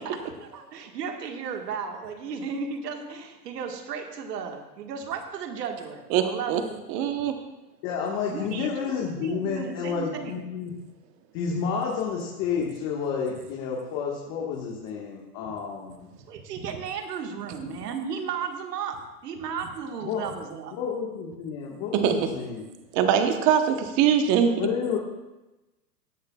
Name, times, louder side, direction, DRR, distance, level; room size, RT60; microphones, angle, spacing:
voice 1, 0.0-6.7 6.9-7.0 8.3-10.4 16.3-20.8, right 6 dB, 70° right, 4 dB, 1.8 m, -35 dB
voice 2, 6.1-6.6 6.9-7.3 21.9-22.2 22.9-24.5, right 8 dB, 30° right, 7 dB, 1.1 m, -22 dB
voice 3, 7.8-10.7 11.3-16.1 20.0-20.2 20.7-22.7 24.6-25.0, left 6 dB, 35° left, -2 dB, 1.6 m, -30 dB
17.0 x 10.0 x 2.4 m, 1.0 s
hypercardioid pair, 140°, 50 cm